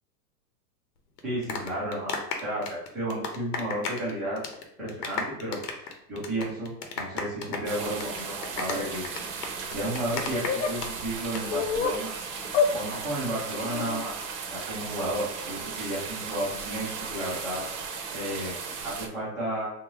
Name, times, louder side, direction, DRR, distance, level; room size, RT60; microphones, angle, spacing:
sound 1, 1.2-4.1 4.4-4.6 4.9-10.9 11.2-11.4, left 5 dB, 70° left, 0.9 m, -34 dB
voice 1, 1.2-4.4 4.8-9.0 9.7-12.1 12.7-14.1 14.5-17.6 18.1-18.6 18.8-19.7, right 1 dB, ahead, -12 dB, 0.3 m, -32 dB
sound 2, 7.6-19.1, right 5 dB, 45° right, 0.7 m, -36 dB
sound 3, 10.5-10.7 11.5-12.0 12.5-12.7 13.6-14.0, left 6 dB, 50° left, 0.6 m, -26 dB
3.5 x 2.7 x 3.0 m, 0.78 s
hypercardioid pair, 140°, 49 cm